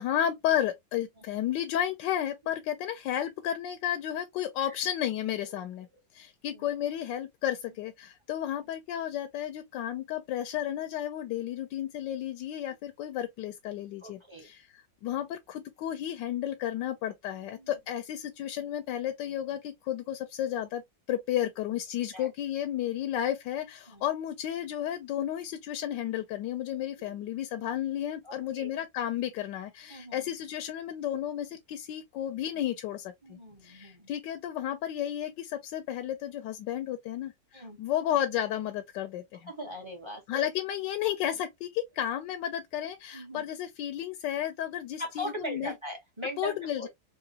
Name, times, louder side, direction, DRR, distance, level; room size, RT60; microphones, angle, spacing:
voice 1, 0.0-5.9 6.1-20.8 21.1-39.5 40.3-45.7 46.4-46.9, left 11 dB, 80° left, 1.2 m, -32 dB
voice 2, 14.0-14.5 17.3-17.7 22.1-22.3 23.9-24.0 27.0-27.2 28.2-28.7 29.9-30.3 33.2-34.1 37.5-37.8 39.5-40.5 43.1-43.4 45.0-46.9, equal, 20° right, 1.0 m, -40 dB
3.8 x 2.9 x 2.7 m
omnidirectional pair, 2.0 m